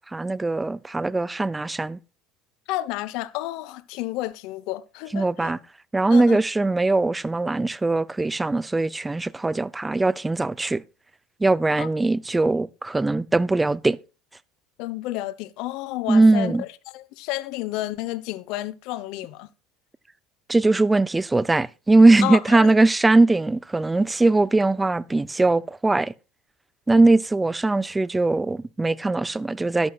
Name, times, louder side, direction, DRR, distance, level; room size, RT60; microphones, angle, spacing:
voice 1, 0.1-2.0 5.1-5.6 5.9-10.8 11.4-14.0 16.1-16.6 20.5-26.1 26.9-29.9, right 2 dB, 10° right, 0.6 m, -20 dB
voice 2, 2.7-5.6 6.1-6.4 11.8-11.9 14.8-16.7 16.9-19.5 22.2-22.7, left 16 dB, 70° left, 0.9 m, -31 dB
13.0 x 11.5 x 2.4 m
supercardioid pair, 95°, 0 cm